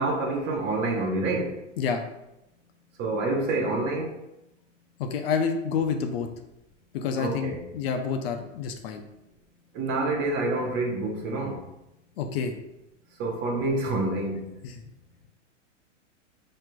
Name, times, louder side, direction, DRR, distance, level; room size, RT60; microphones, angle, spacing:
voice 1, 0.0-1.6 3.0-4.2 7.2-7.6 9.7-11.6 13.2-14.5, right 2 dB, 30° right, 0.8 m, -27 dB
voice 2, 5.0-6.3 6.9-9.0 12.2-12.5 14.6-14.9, left 6 dB, 50° left, 0.6 m, -28 dB
5.7 x 3.2 x 2.2 m
hypercardioid pair, 120°, 38 cm